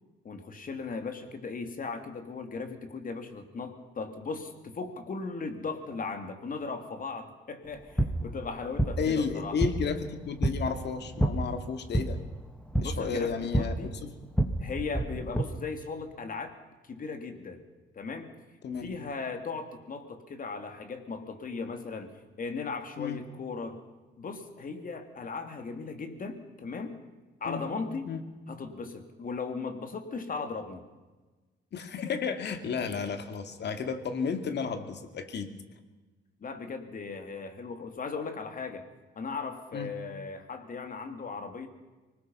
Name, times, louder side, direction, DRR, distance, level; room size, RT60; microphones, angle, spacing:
voice 1, 0.2-9.6 12.8-14.0 14.6-16.6 16.8-17.6 17.9-18.3 18.8-22.1 22.4-23.8 24.2-27.0 27.4-28.1 28.5-30.8 36.4-38.9 39.1-41.7, left 4 dB, 45° left, 7 dB, 3.0 m, -37 dB
sound 1, 7.6-15.4, right 1 dB, 5° left, 2.2 m, -30 dB
voice 2, 9.0-12.2 12.8-14.1 18.6-18.9 23.0-23.2 27.4-27.7 28.1-28.2 31.7-35.5 39.7-39.9, left 6 dB, 60° left, 8 dB, 2.4 m, -32 dB
25.0 x 19.5 x 5.7 m, 1.2 s
cardioid pair, 90°, 20 cm